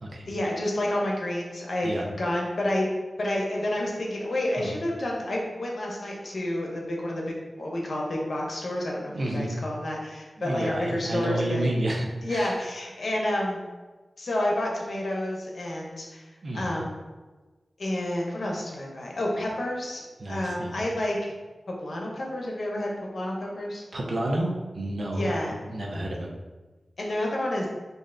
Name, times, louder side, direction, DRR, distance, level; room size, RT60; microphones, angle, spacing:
voice 1, 0.3-1.9 2.2-2.9 3.2-11.6 12.2-13.7 14.2-16.3 16.5-17.0 17.8-21.3 21.8-23.8 25.1-25.5 27.0-27.7, left 1 dB, 70° left, -1 dB, 0.8 m, -29 dB
voice 2, 9.1-9.5 10.4-12.6 16.4-16.9 20.2-20.8 23.9-26.3, right 1 dB, 65° right, -1 dB, 0.6 m, -30 dB
3.2 x 2.7 x 3.8 m, 1.2 s
cardioid pair, 60°, 0 cm